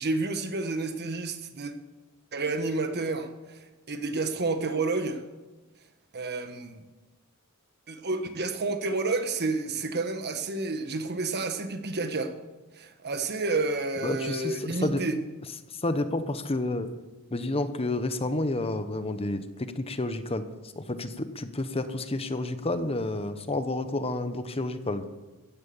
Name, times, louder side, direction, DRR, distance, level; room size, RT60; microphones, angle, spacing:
voice 1, 0.0-1.7 2.3-5.2 6.1-6.8 7.9-12.3 12.7-15.1, right 3 dB, 50° right, 8 dB, 1.4 m, -30 dB
voice 2, 14.0-15.0 15.7-16.9 17.3-20.4 20.8-25.0, left 2 dB, 25° left, 10 dB, 0.9 m, -30 dB
15.5 x 10.5 x 7.1 m, 1.1 s
head